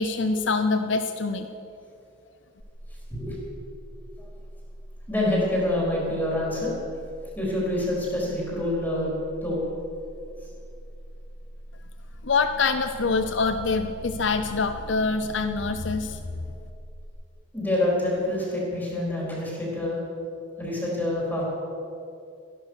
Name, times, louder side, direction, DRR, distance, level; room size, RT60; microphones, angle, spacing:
voice 1, 0.0-1.5 12.2-16.2, left 4 dB, 65° left, 8 dB, 0.7 m, -25 dB
sound 1, 2.6-17.1, equal, 15° right, 2.4 m, -43 dB
voice 2, 5.1-6.7 7.4-9.2 9.4-9.6 17.5-20.0 20.6-21.4, left 1 dB, 10° left, -5 dB, 4.2 m, -26 dB
15.5 x 12.0 x 6.5 m, 2.6 s
head